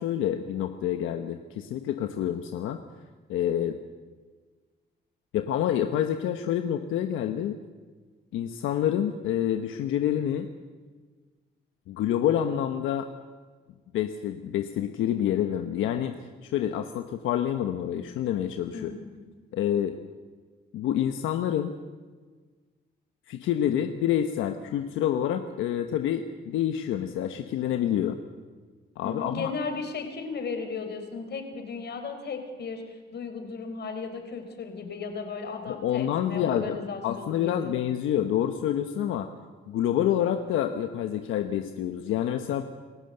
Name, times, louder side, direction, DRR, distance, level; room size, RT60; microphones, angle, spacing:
voice 1, 0.0-2.8 3.3-3.8 5.3-7.6 8.3-10.5 11.9-13.1 13.9-18.9 19.5-20.0 20.7-21.7 23.3-28.2 29.0-29.5 35.7-39.3 39.7-42.6, left 10 dB, 90° left, 7 dB, 1.1 m, -27 dB
voice 2, 18.7-19.0 29.0-37.7, left 4 dB, 55° left, 6 dB, 4.1 m, -35 dB
28.0 x 15.0 x 8.0 m, 1.4 s
cardioid pair, 90°, 20 cm